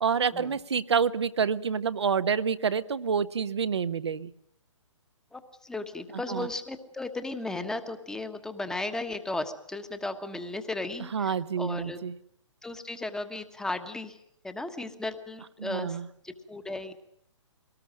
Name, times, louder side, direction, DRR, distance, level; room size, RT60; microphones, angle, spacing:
voice 1, 0.0-4.3 6.1-6.5 11.1-12.2 15.6-16.1, right 6 dB, 60° right, 14 dB, 1.1 m, -28 dB
voice 2, 5.3-12.0 12.6-14.2 14.4-16.0 16.2-16.9, left 2 dB, 5° left, 9 dB, 1.3 m, -35 dB
23.5 x 19.0 x 7.6 m, 0.74 s
figure-of-eight pair, 125°, 16 cm